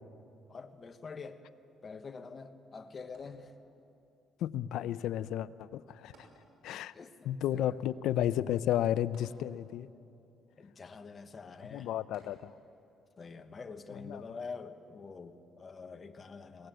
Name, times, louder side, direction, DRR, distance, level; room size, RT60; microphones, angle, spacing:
voice 1, 0.5-1.4 1.8-3.5 6.7-7.7 10.6-11.9 13.2-16.7, left 4 dB, 35° left, 7 dB, 1.2 m, -46 dB
sound 1, 3.1-4.0 6.1-7.0 7.3-7.4 9.1-10.0 12.1-12.9 13.5-13.6, right 2 dB, 90° right, 6.1 m, -62 dB
voice 2, 4.4-6.3 6.6-6.9 7.2-9.9 11.7-12.5 14.1-14.4, left 11 dB, 80° left, 16 dB, 0.5 m, -33 dB
22.5 x 18.5 x 7.7 m, 2.7 s
cardioid pair, 115°, 0 cm